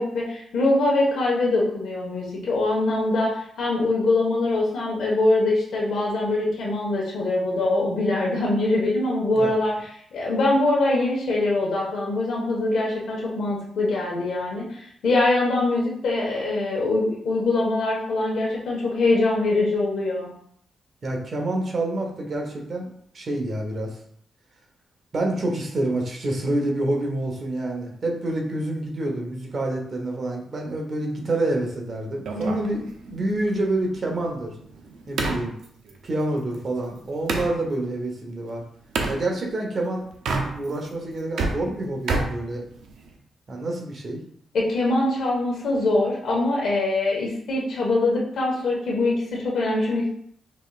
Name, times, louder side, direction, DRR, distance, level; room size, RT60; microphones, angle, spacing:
voice 1, 0.0-9.7 10.1-20.3 32.3-32.8 44.5-50.1, left 2 dB, 70° left, -3 dB, 1.4 m, -23 dB
voice 2, 21.0-22.9 23.1-24.0 25.1-32.8 33.1-34.6 35.1-35.6 36.0-38.6 39.1-40.0 40.4-42.6 43.5-44.2, right 2 dB, 45° right, 1 dB, 1.0 m, -27 dB
sound 1, 32.3-37.6 38.9-39.2 40.1-40.9 41.2-43.2, right 3 dB, 80° right, 0.7 m, -30 dB
5.3 x 3.2 x 2.4 m, 0.65 s
cardioid pair, 105°, 0 cm